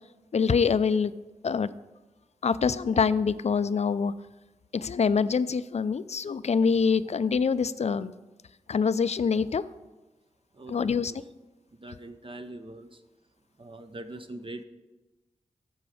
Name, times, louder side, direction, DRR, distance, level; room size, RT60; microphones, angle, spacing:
voice 1, 0.3-1.1 1.4-1.7 2.4-4.1 4.7-8.1 8.7-9.6 10.7-11.1, left 5 dB, 50° left, 15 dB, 0.4 m, -25 dB
voice 2, 10.6-11.2 11.8-12.9 13.6-14.6, right 2 dB, 40° right, 7 dB, 0.7 m, -42 dB
14.0 x 4.8 x 5.0 m, 1.1 s
cardioid pair, 45°, 14 cm